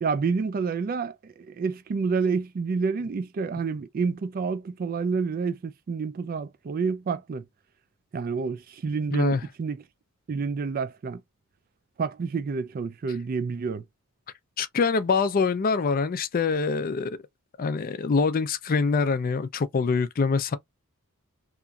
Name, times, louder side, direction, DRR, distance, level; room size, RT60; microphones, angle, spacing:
voice 1, 0.0-7.4 8.1-9.8 10.3-11.2 12.0-13.8, right 5 dB, 40° right, 0.3 m, -29 dB
voice 2, 9.1-9.4 14.6-17.2 17.6-20.6, left 4 dB, 40° left, 0.4 m, -24 dB
2.8 x 2.5 x 2.3 m
head